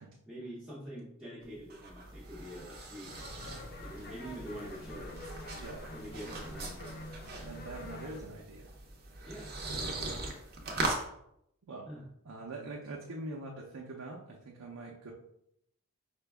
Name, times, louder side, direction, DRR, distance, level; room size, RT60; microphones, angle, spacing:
voice 1, 0.3-3.1 3.8-5.2 5.9-6.8 9.2-9.5 11.9-12.0, equal, 5° right, -10 dB, 0.8 m, -45 dB
sound 1, 1.4-11.0, right 2 dB, 45° right, 0.6 m, -40 dB
sound 2, 3.0-8.2, left 1 dB, 45° left, 0.4 m, -47 dB
voice 2, 7.4-8.8 11.6-11.9 12.2-15.1, right 2 dB, 90° right, -1 dB, 0.6 m, -44 dB
5.0 x 2.2 x 3.4 m, 0.76 s
head